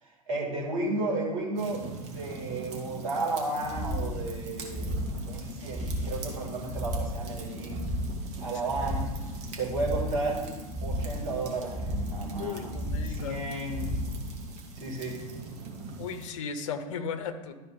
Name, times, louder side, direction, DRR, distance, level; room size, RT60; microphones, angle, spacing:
voice 1, 0.0-7.8 8.4-9.1 9.6-10.5 10.8-12.7 13.0-13.9 14.8-15.2, right 2 dB, 65° right, -3 dB, 2.9 m, -33 dB
sound 1, 1.6-16.3, right 4 dB, 40° right, 1.8 m, -43 dB
sound 2, 3.6-15.4, equal, ahead, 1.7 m, -35 dB
voice 2, 12.4-13.4 16.0-17.5, left 6 dB, 55° left, 9 dB, 0.9 m, -35 dB
12.0 x 4.3 x 5.4 m, 1.2 s
figure-of-eight pair, 85°, 19 cm